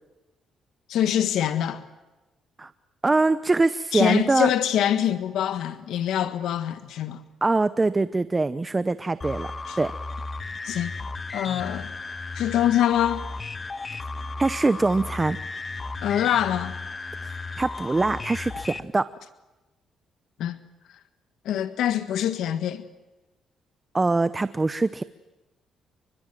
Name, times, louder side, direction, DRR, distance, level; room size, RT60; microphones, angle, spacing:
voice 1, 0.9-1.8 3.9-7.2 9.7-9.8 10.6-10.9 11.3-11.9 12.3-13.2 16.0-16.7 20.4-20.6 21.4-22.8, left 10 dB, 80° left, 1.5 m, -24 dB
voice 2, 3.0-4.5 7.4-9.5 9.8-9.9 14.4-15.4 17.6-19.1 23.9-25.0, right 3 dB, 20° right, 0.8 m, -23 dB
sound 1, 9.2-18.8, left 3 dB, 30° left, 1.5 m, -35 dB
29.5 x 24.5 x 7.6 m
cardioid pair, 90°, 0 cm